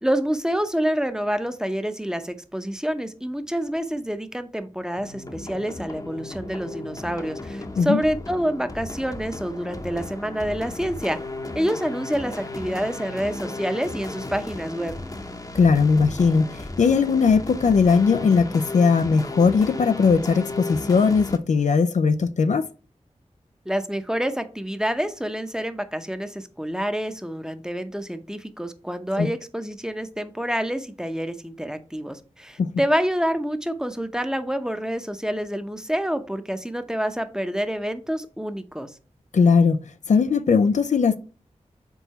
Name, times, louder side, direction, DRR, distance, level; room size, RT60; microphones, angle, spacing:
voice 1, 0.0-11.2 11.5-14.9 23.7-39.0, equal, 5° right, 0.7 m, -27 dB
sound 1, 5.0-21.4, left 2 dB, 30° left, 0.8 m, -35 dB
voice 2, 15.5-22.7 29.2-29.3 32.6-32.7 39.3-39.8 40.1-41.2, left 5 dB, 70° left, 0.4 m, -19 dB
4.6 x 3.9 x 5.6 m
cardioid pair, 45°, 13 cm